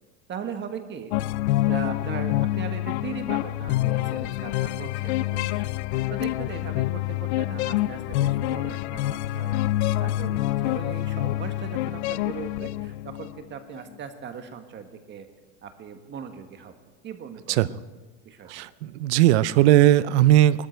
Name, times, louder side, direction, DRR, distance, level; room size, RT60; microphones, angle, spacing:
voice 1, 0.3-1.1 1.6-5.6 6.1-9.6 10.0-15.3 15.6-16.7 17.0-17.8 18.2-18.6, right 7 dB, 35° right, 7 dB, 1.6 m, -39 dB
sound 1, 1.1-13.4, left 15 dB, 85° left, 0.6 m, -27 dB
voice 2, 18.5-20.7, right 13 dB, 90° right, 17 dB, 0.7 m, -18 dB
20.0 x 13.5 x 4.5 m, 1.2 s
supercardioid pair, 130°, 33 cm